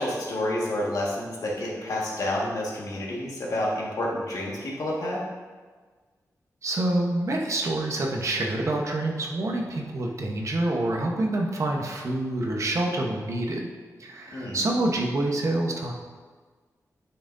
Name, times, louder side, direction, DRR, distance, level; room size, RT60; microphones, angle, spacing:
voice 1, 0.0-5.2 14.3-14.6, left 1 dB, 65° left, -4 dB, 1.7 m, -29 dB
voice 2, 6.6-13.6 14.0-15.9, right 2 dB, 55° right, 0 dB, 1.0 m, -27 dB
10.5 x 5.9 x 2.7 m, 1.4 s
wide cardioid pair, 155°, 6 cm